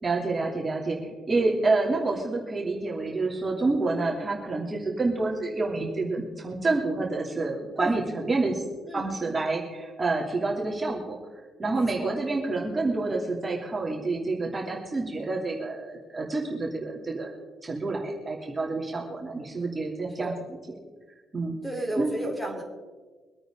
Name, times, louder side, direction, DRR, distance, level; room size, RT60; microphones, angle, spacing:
voice 1, 0.0-1.0 1.3-8.6 8.9-11.2 11.6-17.3 17.6-20.3 21.3-21.6 22.0-22.1, right 3 dB, 25° right, -2 dB, 2.9 m, -28 dB
voice 2, 11.7-12.2 20.2-20.3 21.6-22.6, right 1 dB, 5° left, 1 dB, 3.5 m, -33 dB
24.5 x 9.0 x 3.8 m, 1.4 s
cardioid pair, 90°, 0 cm